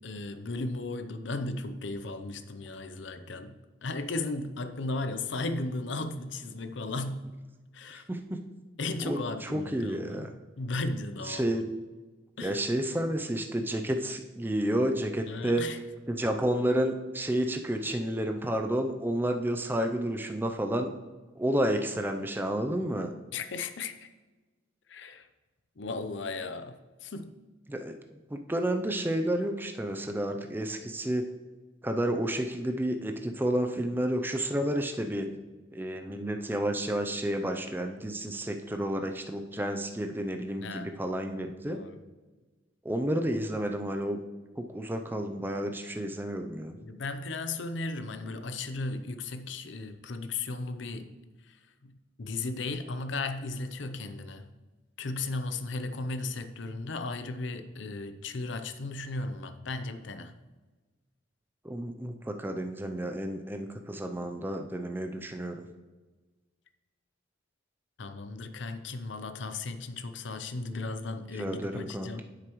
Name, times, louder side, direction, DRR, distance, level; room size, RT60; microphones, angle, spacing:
voice 1, 0.0-7.2 7.7-8.1 8.8-11.6 12.4-12.6 15.3-15.8 23.3-24.1 24.9-25.3 25.8-27.3 40.6-40.9 41.7-42.0 46.8-51.1 51.5-51.6 51.8-51.9 52.2-54.4 55.0-60.3 68.0-72.2, left 3 dB, 70° left, 0.7 m, -36 dB
voice 2, 8.1-8.4 9.0-10.3 11.2-11.6 12.4-15.7 16.1-20.9 21.4-23.1 27.7-27.9 28.3-31.3 31.8-35.3 35.7-41.8 42.8-44.2 44.6-46.8 61.6-65.6 71.4-72.2, right 1 dB, 10° right, 0.5 m, -31 dB
9.7 x 7.9 x 3.1 m
head